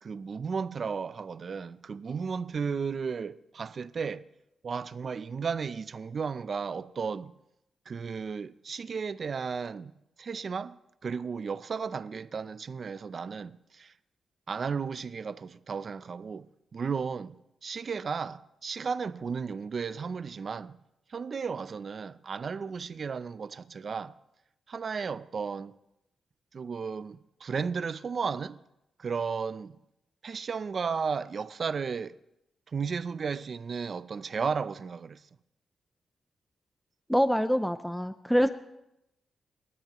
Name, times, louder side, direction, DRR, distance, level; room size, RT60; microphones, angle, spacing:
voice 1, 0.0-4.2 4.6-7.3 7.9-9.9 10.2-10.8 11.0-13.9 14.5-17.3 17.6-20.8 21.1-24.1 24.7-25.7 26.5-28.6 29.0-29.8 30.2-32.2 32.7-35.2, right 5 dB, 45° right, 0.5 m, -34 dB
voice 2, 37.1-38.5, equal, ahead, 0.5 m, -25 dB
29.0 x 13.5 x 3.0 m
cardioid pair, 125°, 0 cm